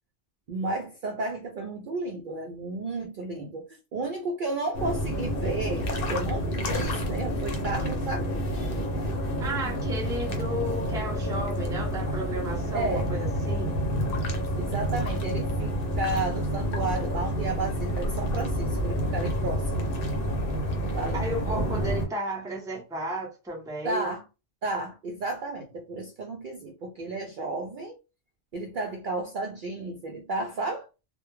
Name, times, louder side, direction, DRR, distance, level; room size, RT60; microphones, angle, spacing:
voice 1, 0.5-8.7 12.7-13.1 14.6-19.9 20.9-21.3 23.8-24.2 24.6-27.9 28.5-30.9, right 2 dB, 60° right, 0.5 m, -32 dB
sound 1, 4.7-22.1, equal, 55° left, 0.7 m, -29 dB
voice 2, 9.4-13.8 21.1-24.1, right 1 dB, 5° right, 0.5 m, -33 dB
2.2 x 2.2 x 3.0 m
omnidirectional pair, 1.3 m